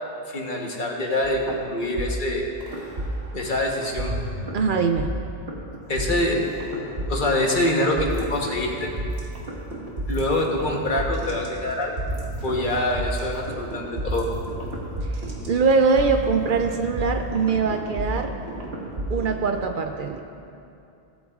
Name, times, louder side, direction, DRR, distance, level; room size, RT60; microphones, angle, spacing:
voice 1, 0.3-2.4 3.3-4.1 5.9-6.4 6.7-6.8 7.1-8.9 10.1-12.0 12.4-14.3, left 1 dB, 55° left, 0 dB, 1.3 m, -25 dB
sound 1, 1.2-3.6 4.0-19.6, right 1 dB, 90° right, 1.6 m, -32 dB
voice 2, 4.5-5.1 15.5-18.3 19.1-20.2, right 5 dB, 60° right, 5 dB, 0.6 m, -22 dB
17.0 x 8.0 x 2.4 m, 2.6 s
omnidirectional pair, 1.0 m